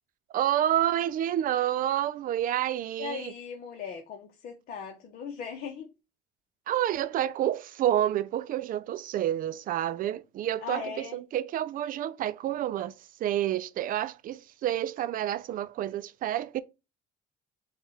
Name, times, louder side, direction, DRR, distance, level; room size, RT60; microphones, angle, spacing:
voice 1, 0.3-3.3 6.7-12.9 13.2-16.6, right 12 dB, 55° right, 0.4 m, -29 dB
voice 2, 3.0-5.9 10.6-11.2, left 7 dB, 60° left, 1.0 m, -39 dB
6.3 x 2.4 x 3.2 m
cardioid pair, 110°, 17 cm